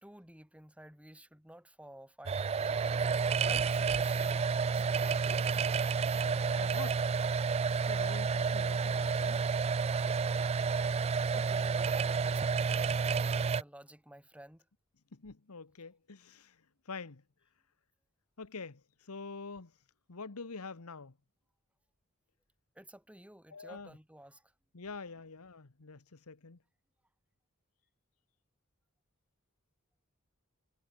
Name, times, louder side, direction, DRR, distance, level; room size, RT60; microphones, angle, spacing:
voice 1, 0.0-5.4 10.6-14.7 22.7-24.5, right 1 dB, 5° right, 4.0 m, -53 dB
sound 1, 2.3-13.6, right 5 dB, 30° right, 0.3 m, -30 dB
voice 2, 6.1-7.0 7.7-9.5 15.1-17.2 18.4-19.7 20.1-21.1 23.5-24.0 24.7-26.6, left 4 dB, 90° left, 1.2 m, -46 dB
head